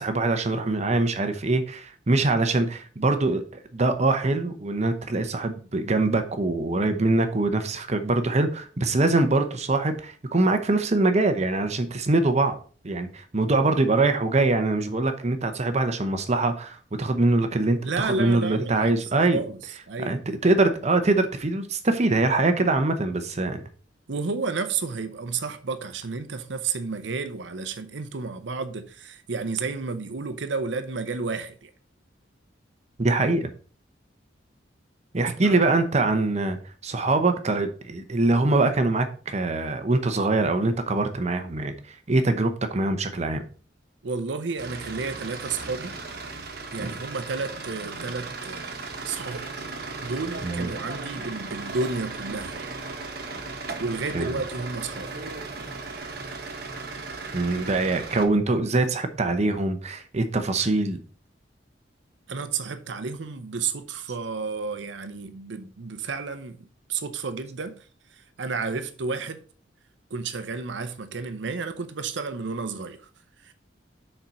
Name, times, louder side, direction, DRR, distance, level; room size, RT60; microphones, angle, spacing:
voice 1, 0.0-12.6 12.8-19.4 20.1-23.6 33.0-33.5 35.1-36.6 36.8-43.4 46.8-46.9 50.4-50.7 54.1-54.4 57.3-61.0, right 2 dB, 40° right, 0.8 m, -23 dB
voice 2, 17.8-18.9 19.3-19.6 19.9-20.4 24.1-31.7 35.4-35.7 44.0-46.0 46.7-49.5 50.0-52.8 53.8-55.1 62.3-67.8 68.1-69.4 70.1-73.1 73.4-73.5, right 4 dB, 75° right, 0.7 m, -31 dB
sound 1, 44.6-58.3, right 3 dB, 55° right, 1.2 m, -36 dB
6.5 x 4.4 x 5.5 m
head